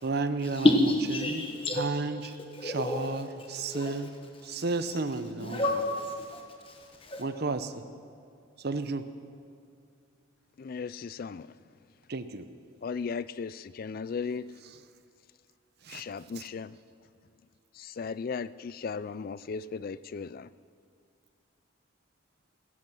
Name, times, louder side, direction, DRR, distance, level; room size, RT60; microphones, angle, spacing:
voice 1, 0.0-1.5 1.7-2.4 2.6-4.1 4.4-5.8 7.2-7.7 8.6-9.0 12.1-12.4 14.6-14.8 15.8-16.0 16.3-16.5, right 3 dB, 55° right, 11 dB, 0.7 m, -32 dB
voice 2, 0.5-1.8 2.6-3.2 3.7-3.9 5.4-6.4 6.7-7.2, left 1 dB, 25° left, 2 dB, 1.2 m, -28 dB
voice 3, 10.6-11.5 12.8-14.4 15.9-16.7 17.8-20.5, left 5 dB, 45° left, 17 dB, 0.3 m, -36 dB
15.5 x 14.5 x 6.1 m, 2.3 s
head